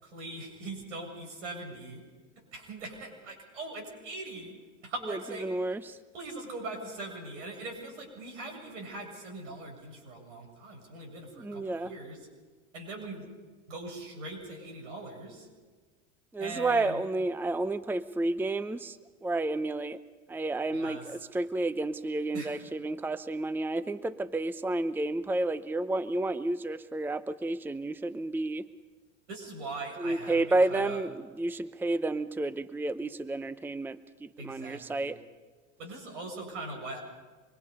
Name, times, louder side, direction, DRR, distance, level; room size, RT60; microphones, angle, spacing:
voice 1, 0.0-2.0 2.5-4.6 4.8-5.5 6.1-12.2 12.7-13.2 13.7-15.5 16.4-17.0 20.7-21.0 22.3-22.6 29.3-30.4 30.7-31.0 34.4-35.1 35.8-37.0, right 2 dB, 80° right, 3 dB, 7.8 m, -41 dB
voice 2, 5.1-6.0 11.3-11.9 16.3-20.0 20.3-28.7 30.0-35.2, right 2 dB, 5° right, 14 dB, 0.7 m, -31 dB
25.5 x 23.5 x 5.5 m, 1.3 s
hypercardioid pair, 95°, 36 cm